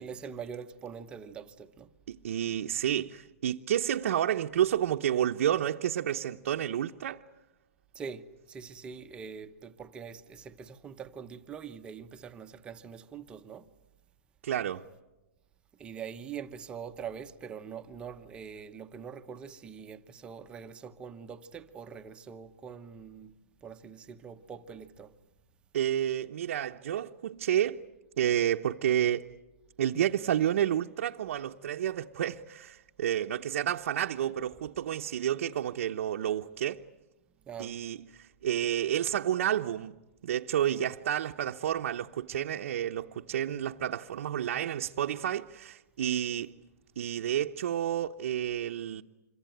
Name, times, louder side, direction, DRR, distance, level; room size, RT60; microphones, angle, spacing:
voice 1, 0.0-1.9 7.9-13.7 15.8-23.3 23.6-25.1 37.4-37.8, right 7 dB, 10° right, 0.9 m, -43 dB
voice 2, 2.1-7.2 14.4-14.8 25.7-27.8 28.2-29.2 29.8-36.8 37.6-40.0 40.2-46.5 47.0-49.0, right 10 dB, 60° right, 0.9 m, -30 dB
27.0 x 24.0 x 9.2 m
hypercardioid pair, 165°, 8 cm